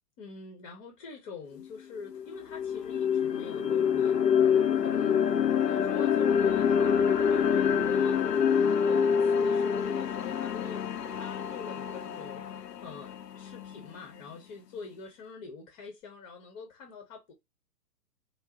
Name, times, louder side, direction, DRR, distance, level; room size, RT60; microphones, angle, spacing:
voice 1, 0.2-5.2 5.6-10.8 11.1-17.3, left 5 dB, 30° left, 1.0 m, -45 dB
sound 1, 1.6-1.7 2.1-14.2, left 7 dB, 80° left, 0.7 m, -26 dB
4.5 x 2.2 x 3.0 m
figure-of-eight pair, 120°, 48 cm